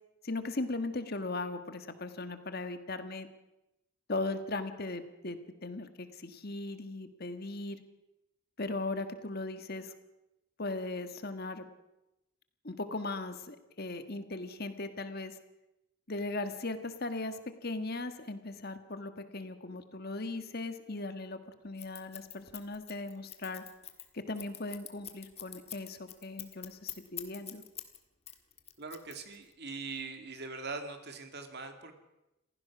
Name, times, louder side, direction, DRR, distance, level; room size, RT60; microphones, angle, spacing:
voice 1, 0.2-3.3 4.1-7.8 8.6-9.9 10.6-11.6 12.6-15.4 16.1-23.6 24.1-27.6, left 2 dB, 45° left, 9 dB, 1.5 m, -38 dB
Scissors, 21.8-28.0 28.3-29.5, left 11 dB, 30° left, 1.6 m, -44 dB
voice 2, 28.8-32.0, right 4 dB, 50° right, 6 dB, 2.4 m, -42 dB
28.0 x 15.5 x 6.1 m, 0.93 s
head